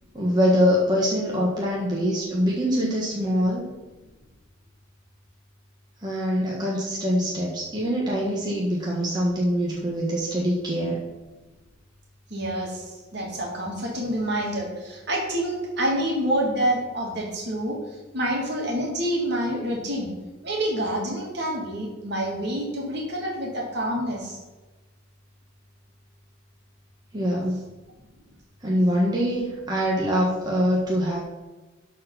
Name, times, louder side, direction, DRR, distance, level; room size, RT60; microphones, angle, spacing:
voice 1, 0.1-3.7 6.0-11.0 27.1-27.7 28.6-31.2, equal, 20° right, -5 dB, 1.5 m, -24 dB
voice 2, 12.3-20.1 20.4-24.4, right 1 dB, 55° right, -1 dB, 2.7 m, -27 dB
12.5 x 4.5 x 5.8 m, 1.2 s
head